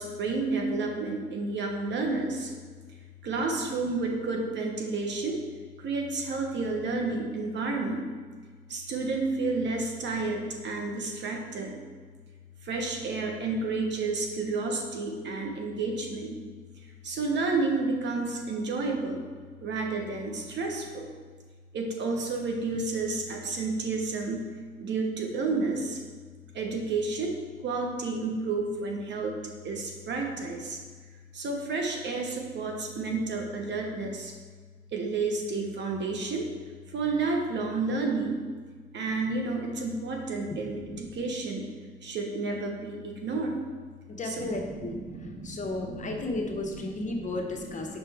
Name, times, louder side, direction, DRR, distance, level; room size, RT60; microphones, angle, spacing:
voice 1, 0.0-2.5 3.2-5.4 5.8-8.1 8.7-11.8 12.6-16.4 17.0-19.2 19.6-21.1 21.7-24.5 24.8-26.0 26.5-27.4 27.6-29.4 29.6-30.8 31.3-34.3 34.9-36.5 36.9-38.4 38.9-41.7 42.0-43.6 44.2-46.2 47.2-47.3, right 3 dB, 65° right, 1 dB, 1.1 m, -31 dB
voice 2, 44.1-48.0, left 2 dB, 40° left, 1 dB, 1.0 m, -34 dB
5.8 x 5.5 x 3.5 m, 1.5 s
cardioid pair, 90°, 20 cm